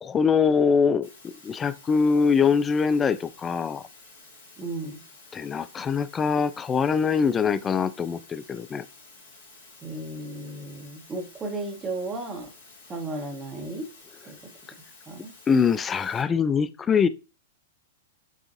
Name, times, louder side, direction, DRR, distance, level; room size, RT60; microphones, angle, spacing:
voice 1, 0.0-3.8 5.3-8.8 15.5-17.1, left 6 dB, 20° left, 0.3 m, -23 dB
Water, 1.0-16.2, left 3 dB, 65° left, 1.7 m, -51 dB
voice 2, 4.6-5.0 9.8-12.5 12.9-13.9 14.2-14.3 15.1-15.3, right 2 dB, 20° right, 1.1 m, -34 dB
7.3 x 2.5 x 2.6 m
figure-of-eight pair, 100°, 0 cm